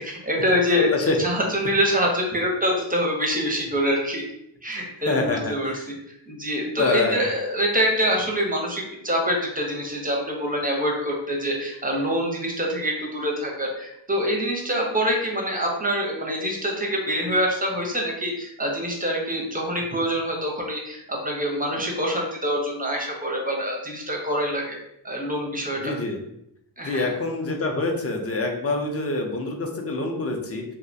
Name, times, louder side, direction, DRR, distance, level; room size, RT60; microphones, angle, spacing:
voice 1, 0.0-4.2 4.6-5.9 6.3-24.8 25.0-25.9 26.8-27.1, equal, 20° right, 0 dB, 0.5 m, -25 dB
voice 2, 0.7-1.2 4.7-5.8 6.8-7.2 25.8-26.2 26.8-30.6, left 2 dB, 35° left, 2 dB, 0.5 m, -26 dB
2.3 x 2.1 x 2.6 m, 0.78 s
cardioid pair, 65°, 46 cm